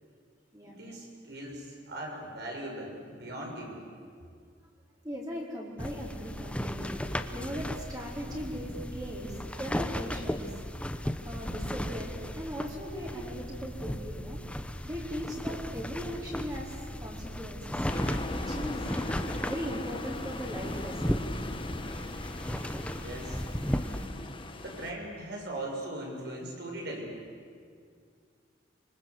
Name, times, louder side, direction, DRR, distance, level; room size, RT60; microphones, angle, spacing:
voice 1, 0.6-3.9 22.9-23.4 24.6-27.2, right 1 dB, 60° right, 0 dB, 6.5 m, -39 dB
voice 2, 5.0-7.0 7.3-10.4 11.2-14.4 14.8-17.8 18.3-18.9 19.5-21.2 23.9-24.2, equal, 20° right, -4 dB, 4.7 m, -39 dB
sound 1, 5.8-24.1, equal, 5° left, 1.0 m, -36 dB
sound 2, 17.9-24.9, left 2 dB, 30° left, 1.4 m, -39 dB
26.5 x 24.5 x 8.3 m, 2.2 s
head